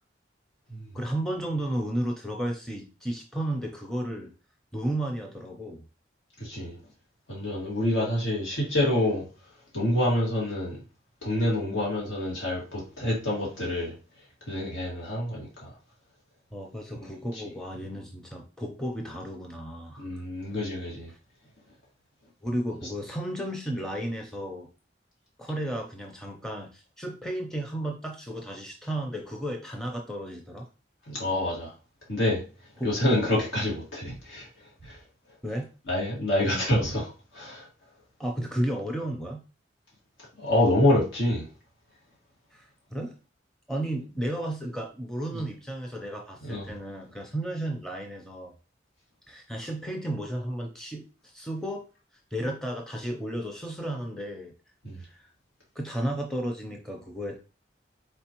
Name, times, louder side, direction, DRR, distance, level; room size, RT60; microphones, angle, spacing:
voice 1, 0.9-4.3 4.7-5.9 16.5-20.2 21.1-21.2 22.4-24.7 25.4-30.7 32.8-33.4 35.4-35.7 38.2-39.4 42.5-43.1 43.7-48.5 49.3-51.8 52.3-54.5 55.0-55.3 55.8-57.4, right 1 dB, 5° left, 0.5 m, -33 dB
voice 2, 6.4-6.8 7.3-9.2 9.7-10.8 11.2-13.9 14.5-15.7 20.0-21.1 31.1-31.7 32.1-32.4 32.8-34.5 34.8-35.0 35.9-37.7 40.4-41.4 45.3-45.4 46.4-46.7 54.8-55.0, left 1 dB, 90° left, 2.0 m, -27 dB
4.3 x 4.2 x 2.9 m
head